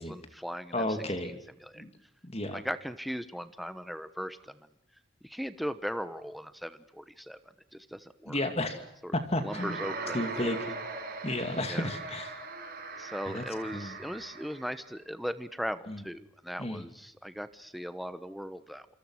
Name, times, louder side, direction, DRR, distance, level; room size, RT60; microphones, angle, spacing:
voice 1, 0.0-0.9 1.2-1.4 1.6-1.8 2.5-4.6 5.2-8.4 9.0-9.2 9.4-10.6 11.7-11.9 13.0-18.9, equal, ahead, 11 dB, 1.0 m, -38 dB
voice 2, 0.7-1.3 1.7-1.9 2.2-2.6 8.3-8.8 9.1-9.8 10.1-10.6 11.2-12.3 13.3-13.4 13.7-13.9 15.9-16.0 16.6-16.8, left 1 dB, 30° left, 8 dB, 2.5 m, -32 dB
sound 1, 9.4-14.8, right 3 dB, 45° right, 6.1 m, -40 dB
27.0 x 27.0 x 6.3 m, 0.76 s
head